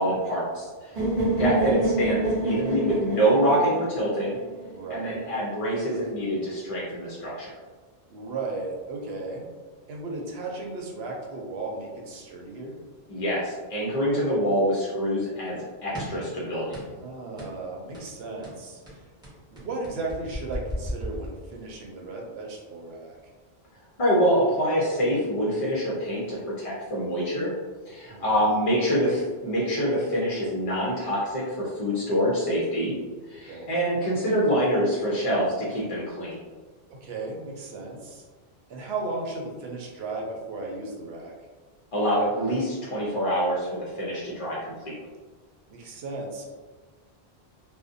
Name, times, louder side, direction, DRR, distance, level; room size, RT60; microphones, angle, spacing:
voice 1, 0.0-0.9 1.4-4.4 4.9-7.5 13.1-15.6 15.8-16.8 24.0-27.5 27.9-32.9 33.3-36.4 41.9-44.9, equal, 45° left, -6 dB, 0.5 m, -25 dB
voice 2, 0.9-1.5 4.6-5.2 8.1-9.4 9.9-12.8 16.9-18.8 19.5-23.2 28.0-28.4 33.5-33.7 37.0-38.2 38.7-41.3 45.7-46.5, right 3 dB, 80° right, -1 dB, 0.8 m, -35 dB
sound 1, 1.0-4.9, right 2 dB, 50° right, 0.7 m, -27 dB
sound 2, 15.9-16.3 16.7-17.0 17.4-17.6 17.9-18.1 18.4-21.8, equal, 5° right, 0.7 m, -36 dB
2.5 x 2.1 x 2.5 m, 1.4 s
omnidirectional pair, 1.1 m